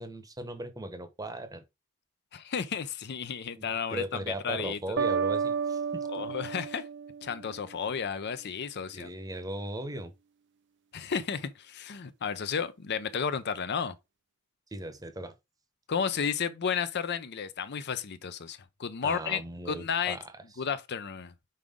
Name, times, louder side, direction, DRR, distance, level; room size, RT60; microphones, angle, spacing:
voice 1, 0.0-1.6 3.5-6.3 8.9-10.1 14.7-15.3 19.0-20.2, right 1 dB, 15° right, 0.9 m, -38 dB
voice 2, 2.3-4.8 6.1-6.9 7.2-9.1 10.9-14.0 15.9-19.4 19.7-20.2 20.6-21.3, left 6 dB, 50° left, 0.6 m, -32 dB
sound 1, 5.0-7.8, right 6 dB, 55° right, 0.5 m, -31 dB
5.5 x 4.9 x 3.6 m
head